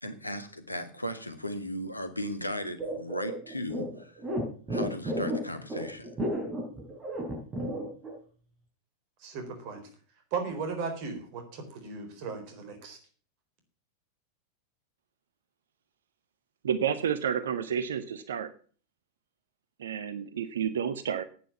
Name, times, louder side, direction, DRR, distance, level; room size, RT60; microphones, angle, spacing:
voice 1, 0.0-4.2 4.7-6.1, equal, 85° left, 9 dB, 1.6 m, -36 dB
sound 1, 2.8-8.1, equal, 20° right, 5.0 m, -32 dB
voice 2, 9.2-9.9 10.3-13.0, right 5 dB, 45° right, 5 dB, 4.0 m, -36 dB
voice 3, 16.6-18.5 19.8-21.2, right 8 dB, 65° right, 13 dB, 0.8 m, -30 dB
10.0 x 9.3 x 7.0 m, 0.43 s
figure-of-eight pair, 90°, 0 cm